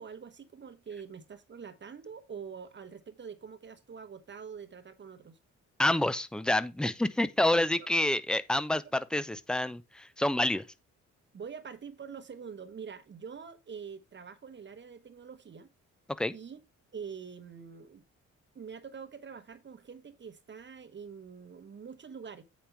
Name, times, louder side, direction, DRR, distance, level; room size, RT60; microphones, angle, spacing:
voice 1, 0.0-5.4 11.3-15.7 16.3-16.6 16.9-18.0 18.5-22.4, right 6 dB, 40° right, 1.1 m, -45 dB
voice 2, 5.8-10.6 16.2-16.3, left 1 dB, 5° left, 0.7 m, -28 dB
8.6 x 5.2 x 4.5 m
cardioid pair, 90°, 30 cm